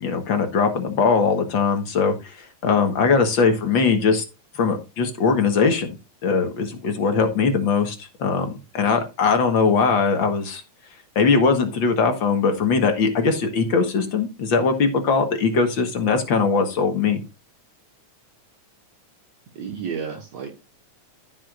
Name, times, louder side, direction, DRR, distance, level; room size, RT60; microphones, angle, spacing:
voice 1, 0.0-4.2 4.6-6.0 6.2-10.6 11.2-17.2, left 5 dB, 50° left, 6 dB, 1.7 m, -21 dB
voice 2, 19.6-20.5, right 7 dB, 65° right, 2 dB, 2.4 m, -31 dB
14.5 x 6.4 x 2.5 m, 0.28 s
omnidirectional pair, 3.5 m